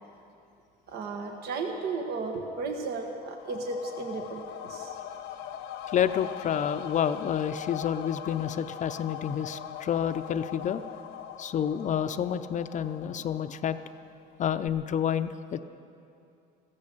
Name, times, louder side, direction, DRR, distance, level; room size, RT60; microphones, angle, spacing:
voice 1, 0.9-4.9, right 3 dB, 70° right, 3 dB, 1.5 m, -34 dB
sound 1, 2.9-14.3 14.7-14.8, left 10 dB, 90° left, 1.0 m, -41 dB
voice 2, 5.9-10.8 11.4-13.8 14.4-15.6, left 9 dB, 45° left, 10 dB, 0.6 m, -29 dB
15.0 x 14.0 x 6.7 m, 2.6 s
cardioid pair, 110°, 17 cm